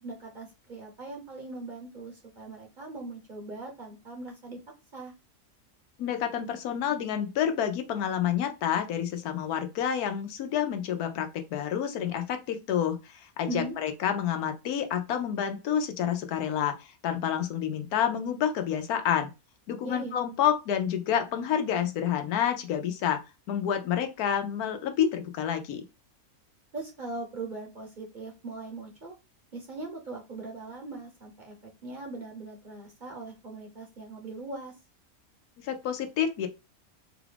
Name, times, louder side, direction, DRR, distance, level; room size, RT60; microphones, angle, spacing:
voice 1, 0.0-4.6 4.9-5.1 13.5-13.8 19.8-20.2 26.7-29.1 29.5-34.7, right 3 dB, 40° right, 0 dB, 0.8 m, -40 dB
voice 2, 6.0-16.8 17.0-19.3 19.7-23.2 23.5-25.8 35.6-36.5, left 9 dB, 85° left, 7 dB, 1.2 m, -29 dB
4.3 x 2.4 x 3.3 m, 0.27 s
omnidirectional pair, 1.5 m